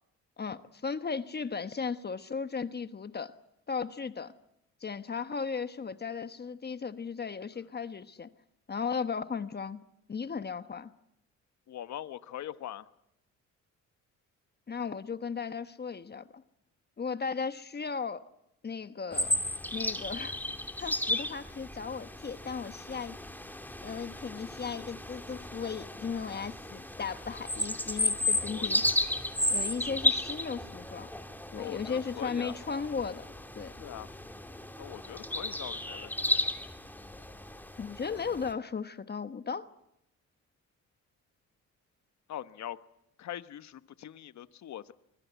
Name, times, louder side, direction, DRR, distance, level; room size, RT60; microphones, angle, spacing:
voice 1, 0.4-3.3 3.7-4.3 4.8-8.3 8.7-9.8 10.1-10.9 14.7-16.4 17.0-18.2 18.6-19.3 19.7-20.4 20.8-23.2 23.8-28.8 29.5-31.1 31.5-33.3 33.5-33.7 37.8-39.7, left 5 dB, 35° left, 1.2 m, -36 dB
voice 2, 11.7-12.9 22.9-23.0 28.5-29.0 31.5-32.5 33.8-34.1 34.8-36.4 42.3-42.8 43.2-44.9, left 11 dB, 65° left, 1.2 m, -42 dB
sound 1, 19.1-38.5, left 1 dB, 5° left, 2.5 m, -34 dB
25.0 x 22.0 x 8.2 m
cardioid pair, 90°, 30 cm